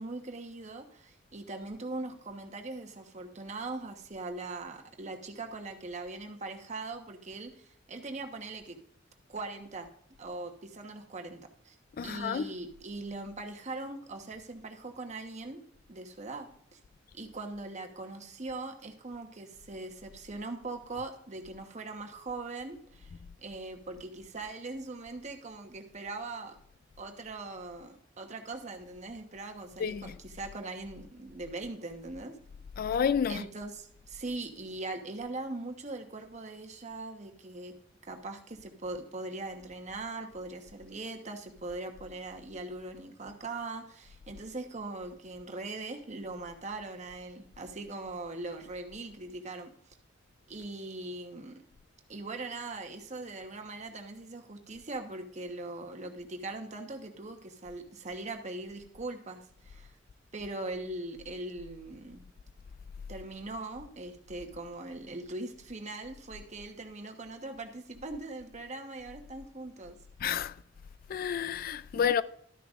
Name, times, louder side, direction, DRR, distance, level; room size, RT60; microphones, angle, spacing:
voice 1, 0.0-8.8 9.3-9.9 10.2-11.7 12.0-15.6 15.9-16.8 17.1-23.1 23.4-26.6 27.0-32.4 33.3-37.7 38.0-49.7 50.5-51.6 52.1-59.9 60.3-62.3 63.1-70.0 71.9-72.1, right 2 dB, 35° right, 1.1 m, -41 dB
voice 2, 12.0-12.5 29.8-30.2 32.8-33.5 70.2-70.5 71.1-72.2, left 7 dB, 50° left, 0.3 m, -30 dB
12.5 x 10.0 x 2.5 m
head